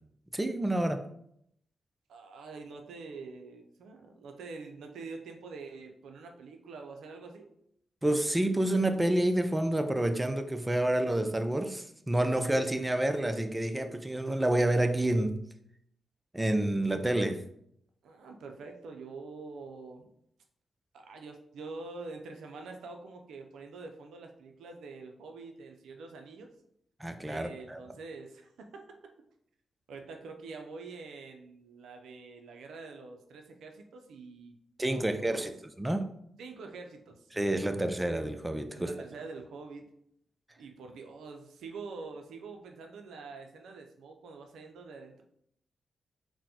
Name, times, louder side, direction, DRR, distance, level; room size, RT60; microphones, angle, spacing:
voice 1, 0.3-1.0 8.0-15.5 16.3-17.4 27.0-27.8 34.8-35.5 35.8-36.1 37.3-38.9, right 1 dB, 15° right, 0.4 m, -28 dB
voice 2, 2.1-7.5 18.0-20.1 20.9-26.5 27.2-29.0 29.9-34.6 34.9-35.4 36.4-37.3 38.8-39.9 40.6-45.2, right 4 dB, 80° right, 0.4 m, -45 dB
4.0 x 2.0 x 2.8 m
supercardioid pair, 40°, 0 cm